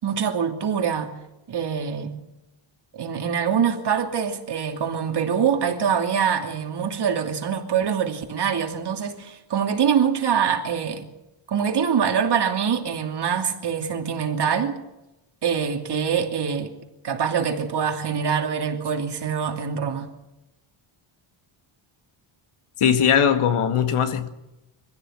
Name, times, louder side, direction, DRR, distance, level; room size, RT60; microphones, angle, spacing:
voice 1, 0.0-1.1 1.5-2.2 2.9-11.1 11.5-14.8 15.4-16.7 17.0-20.1, right 7 dB, 50° right, 2.9 m, -24 dB
voice 2, 22.8-24.3, left 8 dB, 85° left, 2.1 m, -20 dB
24.0 x 15.5 x 7.8 m
wide cardioid pair, 170°, 50 cm